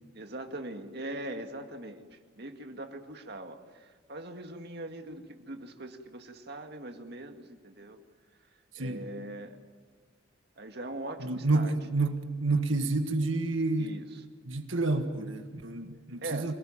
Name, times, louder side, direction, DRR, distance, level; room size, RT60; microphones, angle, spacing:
voice 1, 0.1-8.0 8.8-9.6 10.6-11.7 13.8-14.2 16.2-16.5, right 1 dB, 55° right, 5 dB, 2.0 m, -41 dB
voice 2, 8.7-9.0 11.2-13.9 14.5-16.5, right 2 dB, 75° right, 6 dB, 1.7 m, -29 dB
26.0 x 19.0 x 8.8 m, 1.5 s
head